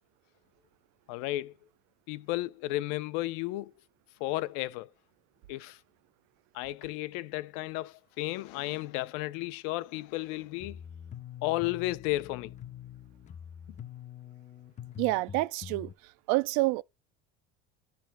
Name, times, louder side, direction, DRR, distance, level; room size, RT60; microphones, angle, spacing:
voice 1, 1.1-1.5 2.1-3.7 4.2-4.9 5.5-5.8 6.5-10.8 11.4-12.5, left 18 dB, 85° left, 0.7 m, -33 dB
sound 1, 10.6-15.9, left 9 dB, 25° left, 0.4 m, -45 dB
voice 2, 15.0-15.9 16.3-16.8, right 20 dB, 80° right, 0.5 m, -27 dB
10.0 x 3.5 x 5.9 m
cardioid pair, 135°, 29 cm